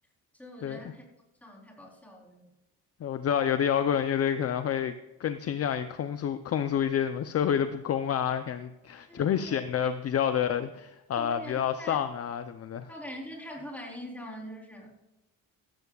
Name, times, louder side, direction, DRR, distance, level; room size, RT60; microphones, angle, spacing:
voice 1, 0.3-1.1 1.4-2.5 9.1-9.6 11.2-12.1 12.9-15.0, equal, 5° left, -2 dB, 3.7 m, -43 dB
voice 2, 3.0-4.9 5.2-12.9, left 8 dB, 40° left, 10 dB, 0.6 m, -28 dB
15.0 x 14.0 x 2.4 m, 0.98 s
cardioid pair, 140°, 37 cm